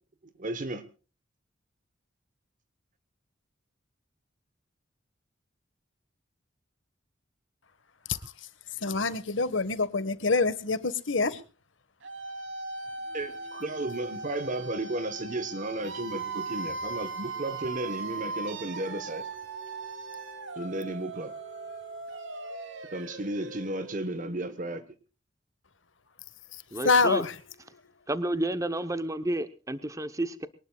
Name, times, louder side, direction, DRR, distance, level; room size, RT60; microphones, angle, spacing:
voice 1, 0.4-0.8 13.1-19.3 20.6-21.3 22.9-24.8, right 2 dB, 40° right, 11 dB, 1.2 m, -34 dB
voice 2, 8.0-11.4 26.5-27.4 27.7-27.8, left 4 dB, 70° left, 14 dB, 1.6 m, -27 dB
sound 1, 12.0-24.8, right 3 dB, 70° right, 3.1 m, -39 dB
voice 3, 26.7-27.2 28.1-30.5, right 1 dB, 15° right, 11 dB, 0.9 m, -30 dB
23.5 x 19.5 x 2.4 m, 0.34 s
head